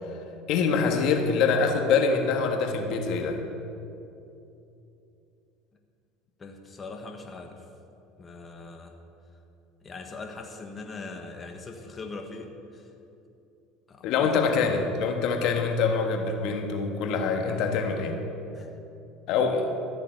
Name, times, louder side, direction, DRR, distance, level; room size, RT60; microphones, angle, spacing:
voice 1, 0.5-3.4 14.0-18.2 19.3-19.7, left 5 dB, 65° left, 4 dB, 1.5 m, -25 dB
voice 2, 6.4-7.6 8.2-9.0 9.8-12.9 13.9-14.8 18.5-18.7, left 3 dB, 25° left, 3 dB, 1.3 m, -41 dB
13.5 x 6.9 x 9.1 m, 2.8 s
supercardioid pair, 100°, 0 cm